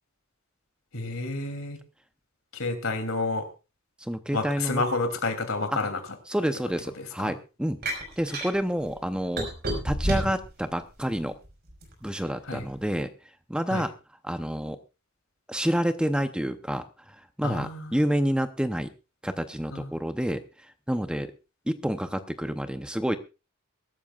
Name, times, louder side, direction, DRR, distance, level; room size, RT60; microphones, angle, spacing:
voice 1, 0.9-1.8 2.5-3.5 4.3-6.0 7.0-7.3 12.5-12.6 13.7-13.8 17.4-17.9 19.7-19.9, left 3 dB, 75° left, 7 dB, 2.9 m, -30 dB
voice 2, 4.0-4.8 5.7-5.9 6.3-7.8 8.2-9.5 9.8-11.3 12.0-13.1 13.5-13.9 14.2-14.8 15.5-18.9 19.2-20.4 20.9-21.3 21.7-23.2, equal, 5° right, 9 dB, 0.7 m, -28 dB
sound 1, 7.8-8.5 9.4-10.5 11.0-11.9, right 1 dB, 50° right, 5.3 m, -29 dB
23.0 x 12.5 x 2.4 m, 0.29 s
head